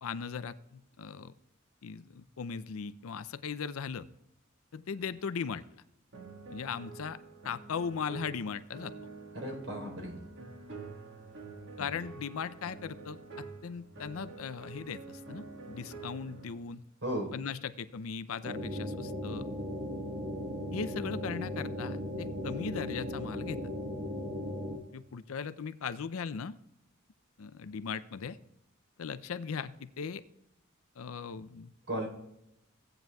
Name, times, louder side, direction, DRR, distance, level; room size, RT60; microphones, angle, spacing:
voice 1, 0.0-1.3 1.8-4.1 4.7-5.6 6.5-7.2 7.4-8.9 11.8-16.8 17.3-19.6 20.7-23.6 24.9-26.6 27.4-28.4 29.0-30.2 31.0-31.7, left 6 dB, 80° left, 13 dB, 0.5 m, -38 dB
sound 1, 6.1-16.6, right 4 dB, 60° right, 1.5 m, -47 dB
voice 2, 9.3-10.2 11.8-12.0 17.0-17.3 31.9-32.1, right 1 dB, 75° right, 0 dB, 3.8 m, -35 dB
sound 2, 18.4-24.8, left 1 dB, 40° right, 1.3 m, -37 dB
16.5 x 9.0 x 2.3 m, 0.84 s
head